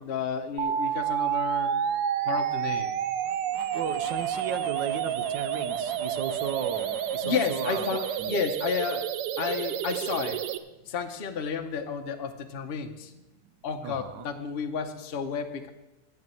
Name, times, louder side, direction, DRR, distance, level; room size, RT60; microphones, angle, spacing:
voice 1, 0.0-1.8 2.2-2.9 7.2-10.5 10.9-13.1 13.6-15.7, left 6 dB, 70° left, 5 dB, 0.5 m, -32 dB
sound 1, 0.6-10.6, right 9 dB, 90° right, 1.6 m, -29 dB
sound 2, 3.2-8.2, left 4 dB, 50° left, 1.9 m, -46 dB
voice 2, 3.7-8.4 13.8-14.3, right 7 dB, 65° right, 11 dB, 1.3 m, -35 dB
13.5 x 5.3 x 9.0 m, 1.0 s
omnidirectional pair, 2.4 m